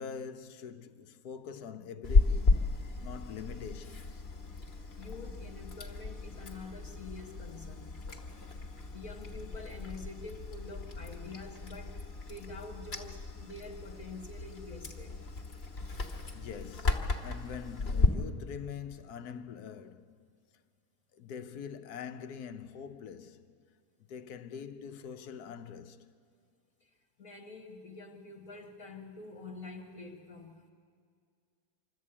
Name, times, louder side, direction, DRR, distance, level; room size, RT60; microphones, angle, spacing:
voice 1, 0.0-2.6 3.0-4.2 16.3-20.3 21.1-23.5 24.1-26.1, left 7 dB, 75° left, 1.3 m, -44 dB
Chewing mastication, 2.0-18.1, left 3 dB, 40° left, 1.6 m, -34 dB
voice 2, 4.7-8.0 8.9-15.2 26.8-26.9 27.2-30.7, left 3 dB, 60° left, 1.6 m, -47 dB
25.5 x 13.0 x 8.7 m
omnidirectional pair, 1.7 m